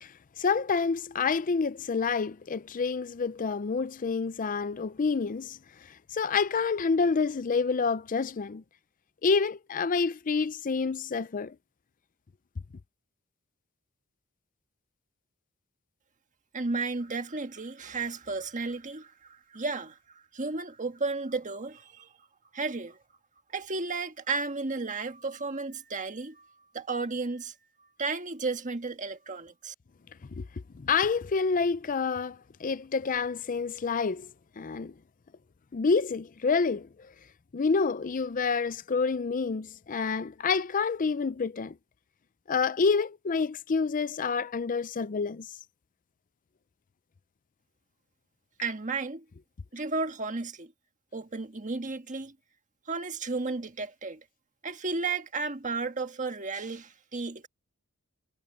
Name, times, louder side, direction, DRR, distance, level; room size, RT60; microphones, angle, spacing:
voice 1, 0.0-8.6 9.2-11.6 30.4-30.5 30.7-34.3 34.6-34.9 35.7-37.1 37.5-41.7 42.5-45.5, left 5 dB, 40° left, 0.5 m, -28 dB
voice 2, 16.5-22.1 22.5-23.0 23.5-27.5 28.0-29.7 48.6-49.2 49.7-50.7 51.1-52.3 52.9-54.2 54.6-57.5, right 3 dB, 35° right, 1.5 m, -33 dB
head